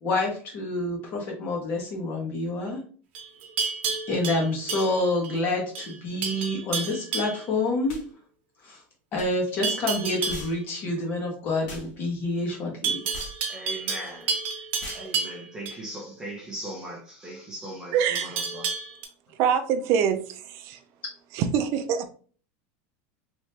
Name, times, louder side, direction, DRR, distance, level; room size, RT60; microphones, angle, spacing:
voice 1, 0.0-2.8 4.1-8.0 8.6-8.8 9.1-13.0, left 2 dB, 30° left, 1.3 m, -28 dB
Livestock farm animals working animals, 3.1-5.4 5.8-6.0 6.2-7.5 9.6-10.5 12.8-15.8 18.2-19.1, right 5 dB, 75° right, 1.0 m, -30 dB
sound 1, 7.9-8.1 9.2-9.3 10.3-10.6 11.7-11.9 13.1-13.4 14.8-15.1, left 1 dB, 60° left, 1.4 m, -40 dB
voice 2, 13.5-14.3 14.9-18.6, right 1 dB, 10° right, 0.7 m, -39 dB
voice 3, 17.9-18.4 19.4-20.8 21.3-22.1, right 8 dB, 45° right, 0.5 m, -25 dB
3.4 x 3.0 x 2.8 m
supercardioid pair, 165°, 7 cm